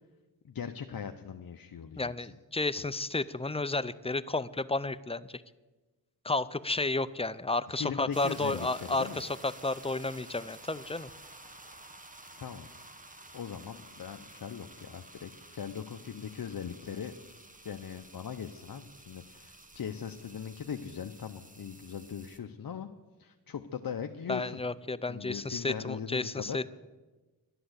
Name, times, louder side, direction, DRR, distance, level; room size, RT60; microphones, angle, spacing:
voice 1, 0.4-2.3 7.7-9.2 12.4-12.7 13.3-17.1 17.6-22.9 23.2-24.6 25.1-26.6, left 7 dB, 55° left, 6 dB, 0.8 m, -40 dB
voice 2, 2.0-5.3 6.2-11.1 24.3-26.7, left 2 dB, 15° left, 15 dB, 0.4 m, -32 dB
sound 1, 8.1-22.4, right 2 dB, 20° right, 1.3 m, -52 dB
11.5 x 11.0 x 8.0 m, 1.2 s
cardioid pair, 70°, 42 cm